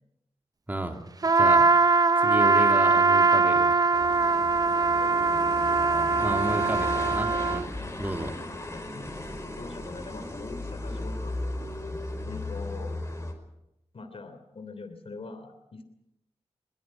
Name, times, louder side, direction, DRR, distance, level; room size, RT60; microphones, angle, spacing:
Trumpet, 1.2-7.7, right 4 dB, 35° right, 0.7 m, -22 dB
voice 1, 1.3-1.7 2.2-3.8 6.2-7.7 8.0-8.4, right 1 dB, 15° right, 4 dB, 2.5 m, -32 dB
sound 1, 3.9-13.3, left 2 dB, 25° left, 4.9 m, -36 dB
voice 2, 4.8-5.1 8.7-9.2 9.6-11.4 12.2-12.9 13.9-15.8, left 3 dB, 60° left, 8 dB, 3.2 m, -42 dB
22.0 x 19.5 x 7.6 m, 0.86 s
cardioid pair, 65°, 11 cm